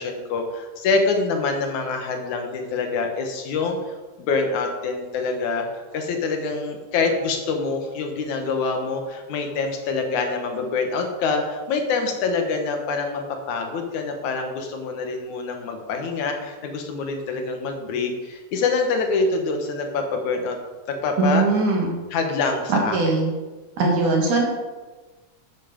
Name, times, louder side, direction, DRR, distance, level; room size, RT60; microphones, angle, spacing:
voice 1, 0.0-5.7 5.9-20.6 20.9-21.4 22.1-23.1, left 4 dB, 75° left, 4 dB, 2.7 m, -25 dB
voice 2, 21.2-21.9 22.7-23.3 23.8-24.4, right 3 dB, 80° right, -1 dB, 3.7 m, -20 dB
11.0 x 8.2 x 5.2 m, 1.3 s
omnidirectional pair, 3.5 m